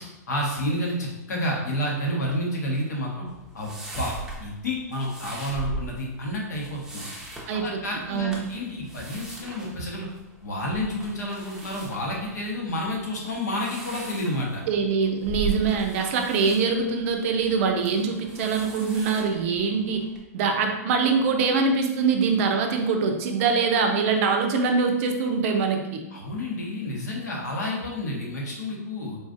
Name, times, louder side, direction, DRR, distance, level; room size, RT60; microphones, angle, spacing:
voice 1, 0.0-3.3 3.5-4.1 4.4-7.1 7.5-10.1 10.4-14.6 26.1-29.2, left 1 dB, 80° left, -2 dB, 1.0 m, -30 dB
sound 1, 3.3-20.2, right 3 dB, 5° right, 0.6 m, -40 dB
voice 2, 7.5-8.4 14.7-20.0 20.3-26.0, right 5 dB, 50° right, 4 dB, 0.5 m, -24 dB
3.9 x 2.5 x 2.5 m, 1.0 s
hypercardioid pair, 110°, 9 cm